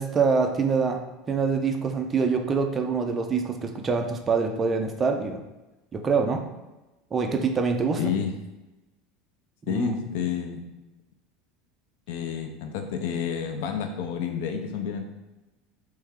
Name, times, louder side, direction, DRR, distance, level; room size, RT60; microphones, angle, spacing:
voice 1, 0.0-5.4 5.9-6.4 7.1-8.1 9.7-10.0, right 5 dB, 20° right, 4 dB, 0.4 m, -25 dB
voice 2, 8.0-8.3 9.7-10.6 12.1-15.1, left 7 dB, 70° left, 6 dB, 0.5 m, -30 dB
3.3 x 3.2 x 3.5 m, 1.0 s
supercardioid pair, 145°, 0 cm